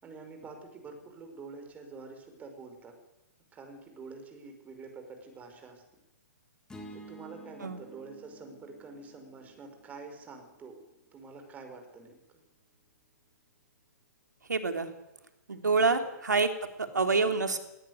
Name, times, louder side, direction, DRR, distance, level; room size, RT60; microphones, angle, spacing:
voice 1, 0.0-2.9 3.5-5.8 6.9-10.8 11.1-12.2 15.8-16.1, right 4 dB, 15° right, 5 dB, 5.2 m, -47 dB
sound 1, 6.7-11.0, right 2 dB, 5° left, 3.4 m, -51 dB
voice 2, 14.5-14.9 15.5-16.5 16.8-17.6, right 4 dB, 75° right, 6 dB, 3.5 m, -27 dB
19.0 x 18.0 x 9.6 m, 0.92 s
figure-of-eight pair, 125°, 10 cm